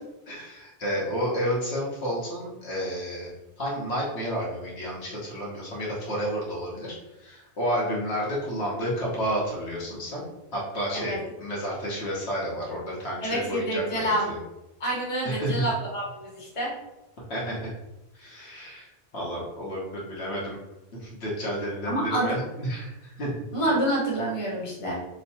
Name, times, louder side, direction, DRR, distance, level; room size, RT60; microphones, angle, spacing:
voice 1, 0.3-3.3 3.6-10.2 10.5-14.4 15.2-15.6 17.3-17.7 18.1-18.9 19.1-20.6 20.9-23.3, equal, 70° left, -5 dB, 1.2 m, -31 dB
voice 2, 13.2-14.3 14.8-16.7 21.9-22.3 23.5-24.9, right 1 dB, 30° left, -4 dB, 1.0 m, -27 dB
3.1 x 2.2 x 4.2 m, 0.96 s
omnidirectional pair, 1.1 m